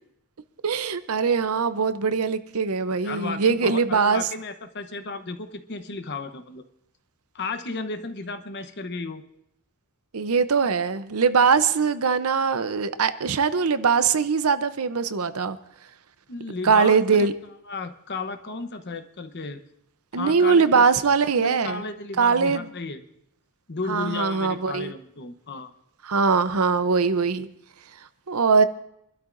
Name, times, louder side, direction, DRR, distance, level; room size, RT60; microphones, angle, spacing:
voice 1, 0.6-4.3 10.1-15.6 16.6-17.3 20.1-21.8 22.2-22.7 23.9-24.9 26.0-27.5 28.3-28.7, right 5 dB, 75° right, 0.7 m, -21 dB
voice 2, 3.0-6.6 7.3-9.2 16.3-17.3 17.7-19.6 20.1-20.9 21.4-23.0 23.7-25.7, left 3 dB, 50° left, 1.0 m, -34 dB
26.5 x 12.5 x 2.6 m
head